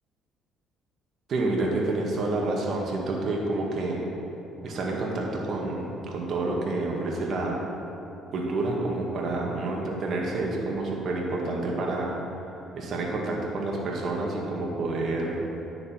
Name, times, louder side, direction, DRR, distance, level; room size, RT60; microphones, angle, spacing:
voice 1, 1.3-4.0 4.6-7.6 8.3-12.1 12.8-15.4, right 2 dB, 55° right, -2 dB, 1.9 m, -28 dB
11.5 x 6.5 x 4.5 m, 3.0 s
cardioid pair, 100°, 0 cm